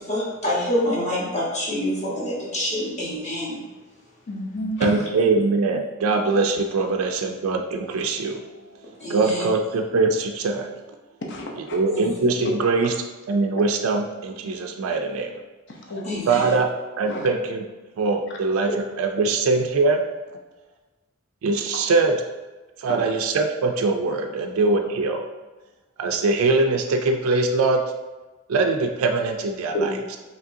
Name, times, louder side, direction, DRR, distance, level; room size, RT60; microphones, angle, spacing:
voice 1, 0.0-3.6 9.0-9.4 11.9-12.0 16.0-16.5, left 1 dB, 35° left, -6 dB, 1.1 m, -26 dB
voice 2, 4.3-4.8 11.3-11.8 15.7-16.0 16.4-16.5 17.1-17.3 18.9-19.0 22.8-22.9 29.7-30.2, equal, 55° left, 0 dB, 0.7 m, -30 dB
voice 3, 4.8-8.4 9.1-10.7 11.7-12.9 13.3-15.3 16.3-16.7 17.0-17.6 18.0-18.7 19.0-20.0 21.4-22.1 22.8-25.3 26.0-27.8 28.5-29.9, right 3 dB, 80° right, 4 dB, 0.4 m, -22 dB
5.0 x 3.2 x 2.7 m, 1.2 s
head